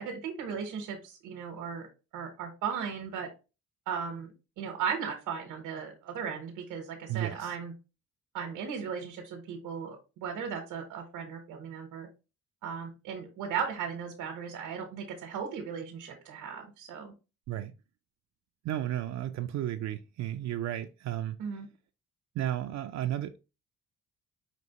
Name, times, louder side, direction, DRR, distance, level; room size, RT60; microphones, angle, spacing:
voice 1, 0.0-3.3 3.9-7.7 8.3-12.1 12.6-17.1 21.4-21.7, right 6 dB, 85° right, 1.0 m, -37 dB
voice 2, 7.1-7.5 17.5-17.7 18.6-21.4 22.4-23.4, right 12 dB, 65° right, 0.4 m, -33 dB
5.2 x 2.9 x 2.9 m
cardioid pair, 90°, 30 cm